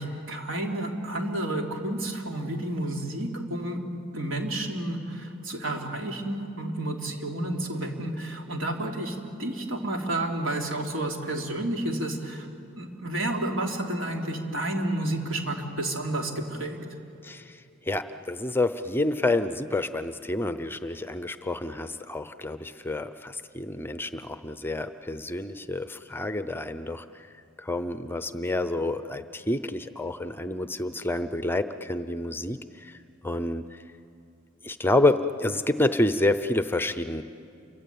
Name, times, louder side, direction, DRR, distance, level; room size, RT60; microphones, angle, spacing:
voice 1, 0.0-3.8 4.1-12.5 12.8-16.8, right 1 dB, 75° right, 1 dB, 3.3 m, -31 dB
voice 2, 17.2-17.6 17.9-27.0 27.6-33.0 33.2-33.6 34.6-37.2, left 2 dB, 10° left, 11 dB, 0.6 m, -28 dB
28.5 x 24.0 x 8.6 m, 2.5 s
head